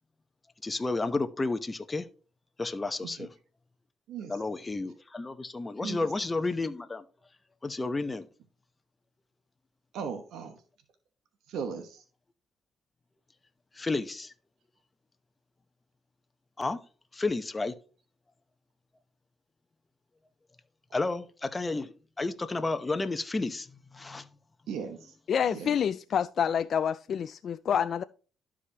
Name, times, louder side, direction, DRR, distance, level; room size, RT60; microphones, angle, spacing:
voice 1, 0.6-2.1 2.6-3.3 4.3-7.0 7.6-8.3 13.7-14.3 16.6-16.8 17.1-17.7 20.9-24.3, left 3 dB, 20° left, 0.8 m, -31 dB
voice 2, 9.9-10.6 11.5-12.0 24.7-25.1 25.4-25.8, right 6 dB, 80° right, 1.0 m, -37 dB
voice 3, 25.3-28.0, left 8 dB, 60° left, 0.3 m, -28 dB
12.0 x 4.9 x 2.9 m
cardioid pair, 90°, 0 cm